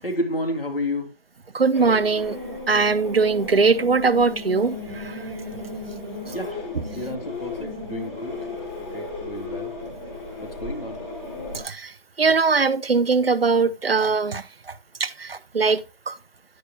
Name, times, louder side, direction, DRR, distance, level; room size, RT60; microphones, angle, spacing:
voice 1, 0.0-1.1 6.3-6.7 7.0-8.4 8.8-9.8 10.4-11.0, left 1 dB, 75° left, 3.4 m, -31 dB
voice 2, 1.5-2.4 2.7-5.3 6.3-6.4 11.5-16.2, right 4 dB, 85° right, 1.0 m, -21 dB
sound 1, 1.7-11.6, left 2 dB, 15° left, 3.0 m, -34 dB
10.5 x 9.8 x 2.3 m
figure-of-eight pair, 165°, 29 cm